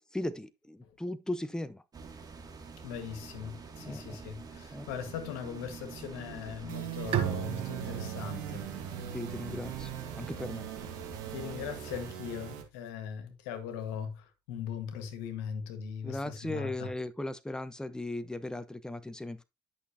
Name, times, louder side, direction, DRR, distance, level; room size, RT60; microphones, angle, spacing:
voice 1, 0.1-1.8 3.8-4.2 4.7-4.9 9.1-9.9 10.2-10.7 16.0-19.4, left 1 dB, 5° left, 1.0 m, -37 dB
sound 1, 1.9-12.1, right 5 dB, 40° right, 2.6 m, -47 dB
voice 2, 2.8-8.7 11.3-16.9, left 7 dB, 75° left, 1.7 m, -40 dB
sound 2, 6.7-12.6, right 10 dB, 80° right, 1.8 m, -41 dB
Bowed string instrument, 7.1-10.6, right 11 dB, 65° right, 1.4 m, -37 dB
11.0 x 6.2 x 2.9 m
hypercardioid pair, 55°, 10 cm